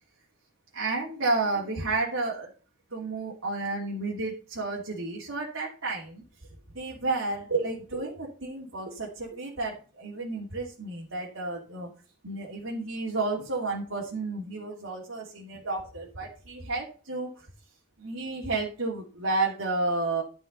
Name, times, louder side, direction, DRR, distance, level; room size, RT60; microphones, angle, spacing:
voice 1, 0.7-2.5 2.9-6.2 6.7-11.9 12.2-17.5 18.0-20.2, right 3 dB, 85° right, -3 dB, 3.0 m, -31 dB
12.0 x 5.6 x 5.3 m, 0.36 s
head